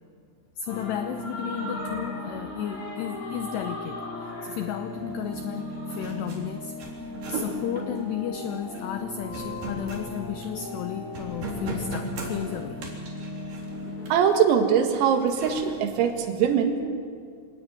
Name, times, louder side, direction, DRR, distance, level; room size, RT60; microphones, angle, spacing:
voice 1, 0.6-7.0 7.3-12.9, left 10 dB, 80° left, 7 dB, 2.5 m, -34 dB
sound 1, 0.7-14.1, left 1 dB, 60° left, 8.0 m, -37 dB
sound 2, 5.3-5.4 5.6-10.8 11.1-14.3 15.0-15.9, right 2 dB, 50° right, 5.3 m, -37 dB
voice 2, 14.1-16.9, right 7 dB, 85° right, 5 dB, 4.5 m, -22 dB
26.0 x 18.5 x 9.3 m, 2.1 s
omnidirectional pair, 5.9 m